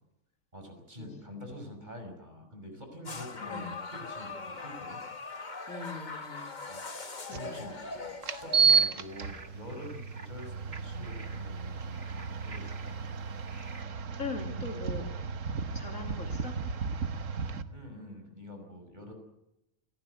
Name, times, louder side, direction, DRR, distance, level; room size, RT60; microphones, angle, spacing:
voice 1, 0.5-5.0 6.6-7.7 8.4-13.0 17.7-19.1, left 1 dB, 30° right, 4 dB, 6.0 m, -46 dB
sound 1, 3.1-8.7, left 3 dB, 35° left, 1.4 m, -41 dB
voice 2, 3.4-3.7 5.7-6.6 7.2-7.6 7.9-8.0 14.2-15.1 15.7-16.6, left 4 dB, 65° left, 3 dB, 3.1 m, -41 dB
sound 2, 7.3-7.4 8.2-17.6, right 5 dB, 65° right, 1.5 m, -32 dB
sound 3, 8.7-13.8, right 4 dB, 45° right, 2.1 m, -51 dB
29.0 x 14.5 x 8.1 m, 0.84 s
omnidirectional pair, 1.5 m